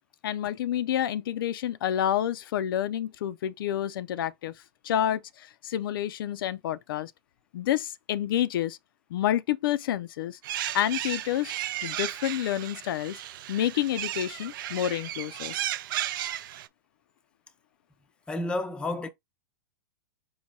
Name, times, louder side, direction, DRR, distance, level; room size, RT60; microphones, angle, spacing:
voice 1, 0.2-4.5 4.8-7.1 7.5-8.8 9.1-10.4 10.7-11.5 11.8-13.2 13.5-15.5, left 11 dB, 65° left, 0.4 m, -29 dB
sound 1, 10.4-16.7, right 13 dB, 60° right, 0.4 m, -34 dB
voice 2, 18.3-19.1, left 2 dB, 10° left, 0.5 m, -31 dB
4.7 x 2.1 x 4.0 m
hypercardioid pair, 125°, 12 cm